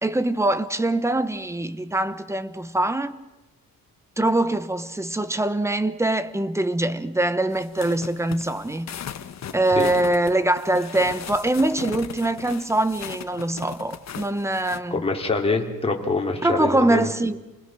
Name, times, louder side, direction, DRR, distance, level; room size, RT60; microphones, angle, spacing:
voice 1, 0.0-3.2 4.2-8.9 9.5-15.0 16.4-17.4, right 1 dB, 10° right, 0.9 m, -23 dB
sound 1, 7.5-14.8, left 9 dB, 50° left, 1.3 m, -38 dB
voice 2, 14.9-17.1, left 3 dB, 15° left, 3.2 m, -24 dB
29.5 x 20.5 x 6.2 m
cardioid pair, 150°, 36 cm